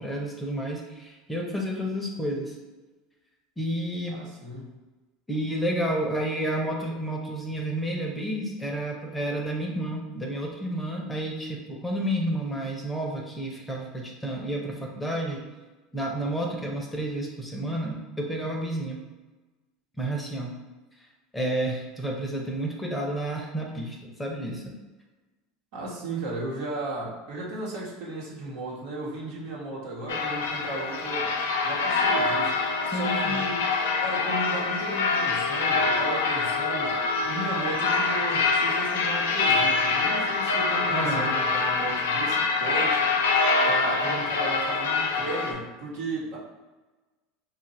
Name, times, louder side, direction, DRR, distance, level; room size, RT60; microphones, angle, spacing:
voice 1, 0.0-2.5 3.6-4.2 5.3-15.4 15.9-19.0 20.0-20.5 21.3-24.7 32.9-33.4 40.9-41.3, right 1 dB, 10° left, -1 dB, 0.8 m, -30 dB
voice 2, 4.1-4.7 25.7-31.3 31.6-33.6 34.0-43.0 43.7-46.4, right 2 dB, 70° right, -4 dB, 1.2 m, -35 dB
sound 1, 30.1-45.5, left 4 dB, 85° left, 0.4 m, -25 dB
2.7 x 2.5 x 4.2 m, 1.2 s
hypercardioid pair, 90°, 0 cm